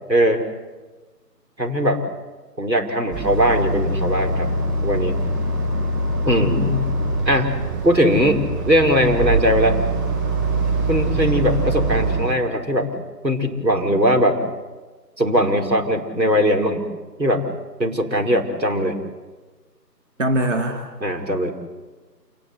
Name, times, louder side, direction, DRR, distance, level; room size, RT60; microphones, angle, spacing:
voice 1, 0.1-0.4 1.6-2.0 2.6-4.5 4.8-5.2 6.3-6.6 7.3-7.5 7.8-9.8 10.9-12.9 13.2-14.4 15.2-16.8 17.2-17.4 17.8-19.0 21.0-21.5, equal, 90° right, 3 dB, 5.4 m, -20 dB
Boat Water vehicle, 3.1-12.2, right 2 dB, 10° right, 5.7 m, -23 dB
voice 2, 6.3-6.9 20.2-20.8, equal, 45° right, 4 dB, 2.7 m, -23 dB
28.0 x 19.5 x 8.5 m, 1.3 s
figure-of-eight pair, 165°, 50 cm